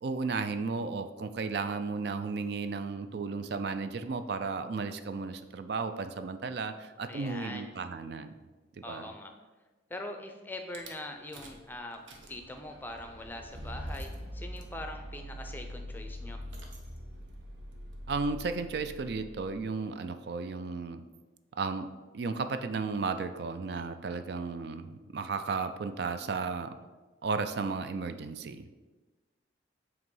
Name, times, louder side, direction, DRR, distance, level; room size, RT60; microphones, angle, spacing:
voice 1, 0.0-8.3 8.8-9.1 18.1-21.0 21.5-21.9 22.1-26.7 27.2-28.7, right 4 dB, 55° right, 9 dB, 0.4 m, -34 dB
voice 2, 7.1-7.7 8.8-9.3 9.9-12.0 12.3-16.4, left 1 dB, 10° left, 4 dB, 0.5 m, -42 dB
Rattle / Car / Engine starting, 10.7-10.9 11.3-11.7 11.9-19.7, equal, 75° right, 1.0 m, -43 dB
7.9 x 3.0 x 5.4 m, 1.2 s
head